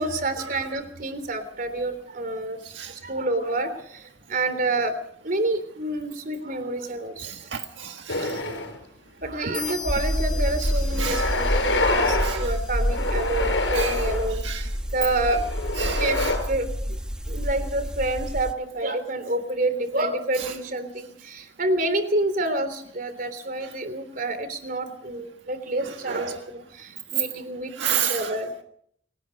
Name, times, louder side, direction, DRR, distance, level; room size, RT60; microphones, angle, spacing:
voice 1, 0.0-2.6 3.0-3.7 4.3-4.9 5.2-7.2 8.3-8.6 9.2-14.7 14.9-15.7 16.0-16.2 16.5-16.7 17.3-28.6, right 2 dB, 50° right, 10 dB, 3.4 m, -28 dB
voice 2, 7.2-8.3 10.6-11.3 12.2-12.5 13.7-14.1 14.4-14.6 15.8-16.3 20.4-20.5 25.8-26.4 27.8-28.3, right 8 dB, 90° right, 5 dB, 1.6 m, -31 dB
sound 1, 8.1-8.8 9.2-9.3 10.4-10.5 11.0-12.4 12.8-14.3 15.1-16.4, left 2 dB, 80° left, 5.4 m, -26 dB
sound 2, 9.5-13.1, left 8 dB, 25° left, 7.2 m, -40 dB
sound 3, 9.9-18.5, equal, 5° right, 1.3 m, -28 dB
28.5 x 18.0 x 5.3 m, 0.66 s
head